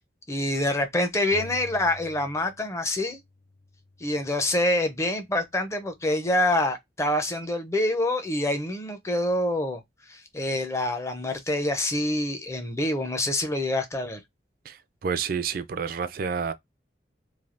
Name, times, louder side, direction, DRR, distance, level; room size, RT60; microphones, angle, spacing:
voice 1, 0.3-3.2 4.0-9.8 10.1-14.2, left 1 dB, 15° left, 0.5 m, -26 dB
sound 1, 1.3-2.8 3.1-4.8, left 2 dB, 85° left, 1.7 m, -47 dB
voice 2, 14.7-16.5, right 6 dB, 50° right, 0.3 m, -29 dB
3.2 x 2.6 x 2.5 m
head